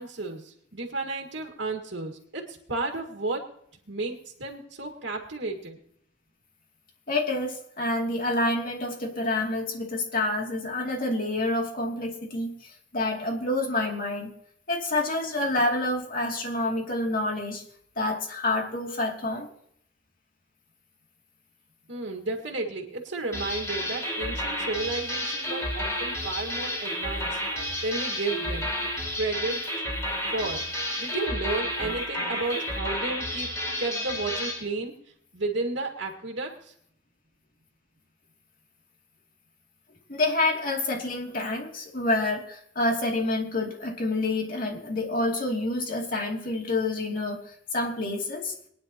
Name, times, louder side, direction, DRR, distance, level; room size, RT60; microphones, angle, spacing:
voice 1, 0.0-3.4 3.9-5.8 21.9-27.4 27.8-28.7 29.1-29.6 30.3-30.6 31.0-33.5 33.8-34.9 35.3-36.7, right 3 dB, 80° right, 1 dB, 1.9 m, -32 dB
voice 2, 7.1-14.3 14.7-17.6 18.0-19.5 40.1-48.5, left 2 dB, 50° left, 1 dB, 2.7 m, -28 dB
sound 1, 23.3-34.6, equal, 15° left, 4.4 m, -31 dB
22.0 x 10.0 x 2.9 m, 0.67 s
head